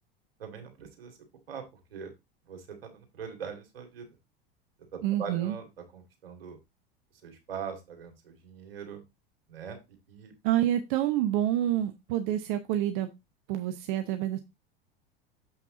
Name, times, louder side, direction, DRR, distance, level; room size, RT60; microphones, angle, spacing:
voice 1, 0.4-1.2 1.5-2.1 2.5-4.1 5.2-6.6 7.2-9.0 9.5-10.3, right 6 dB, 80° right, 5 dB, 2.4 m, -42 dB
voice 2, 5.0-5.5 10.4-13.1 13.5-14.4, right 12 dB, 55° right, 7 dB, 0.9 m, -27 dB
7.4 x 5.8 x 3.7 m, 0.22 s
hypercardioid pair, 85°, 29 cm